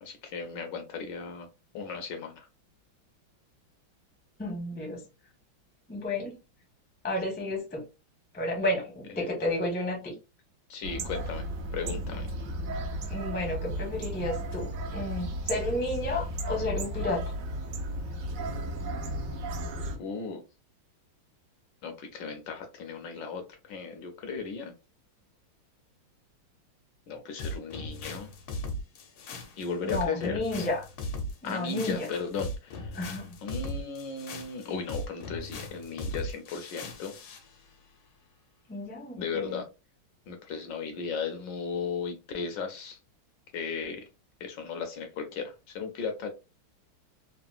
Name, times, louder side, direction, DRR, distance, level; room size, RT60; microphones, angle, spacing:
voice 1, 0.0-1.5 1.7-2.5 9.2-9.3 10.7-11.4 11.7-12.3 20.0-20.4 21.8-24.7 27.1-28.3 29.6-30.4 31.4-37.1 39.2-39.7 40.3-43.0 43.5-44.0 44.4-46.3, left 5 dB, 75° left, 1.1 m, -36 dB
voice 2, 4.4-5.0 5.9-6.3 7.0-7.8 8.3-10.1 13.1-17.2 29.8-30.9 31.4-32.1 32.9-33.4 38.7-39.6, left 1 dB, 10° left, 0.4 m, -32 dB
sound 1, 10.8-20.0, right 1 dB, 75° right, 0.7 m, -34 dB
sound 2, 27.4-37.5, left 1 dB, 90° left, 1.6 m, -38 dB
3.7 x 2.0 x 2.4 m
omnidirectional pair, 2.2 m